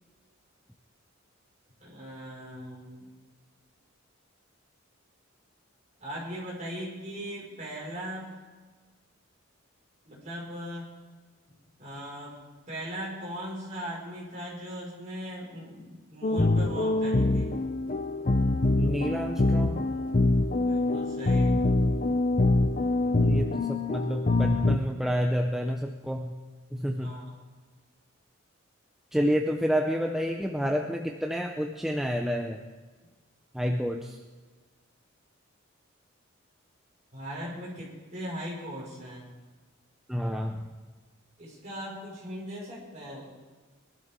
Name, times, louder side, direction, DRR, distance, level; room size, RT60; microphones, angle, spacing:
voice 1, 1.8-3.1 6.0-8.3 10.0-10.9 11.8-12.3 12.7-17.5 20.6-21.5 26.9-27.3 37.1-39.3 41.4-43.3, equal, 35° right, -5 dB, 5.3 m, -39 dB
sound 1, 16.2-24.8, left 2 dB, 40° left, 0.6 m, -25 dB
voice 2, 18.8-19.9 23.1-26.3 26.7-27.2 29.1-32.6 33.5-34.2 40.1-40.7, equal, ahead, 2 dB, 0.6 m, -29 dB
22.5 x 12.5 x 3.7 m, 1.3 s
head